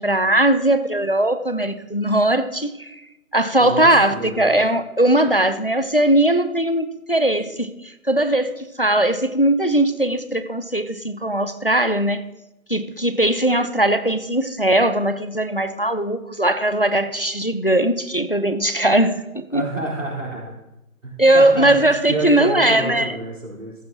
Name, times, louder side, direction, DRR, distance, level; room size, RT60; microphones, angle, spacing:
voice 1, 0.0-3.0 3.3-12.2 12.7-19.6 21.2-23.1, right 1 dB, 40° left, 12 dB, 0.4 m, -19 dB
voice 2, 3.6-4.5 19.5-20.5 21.0-21.8 22.1-23.8, right 2 dB, 60° right, -4 dB, 4.0 m, -28 dB
14.0 x 9.5 x 2.9 m, 0.94 s
figure-of-eight pair, 160°, 44 cm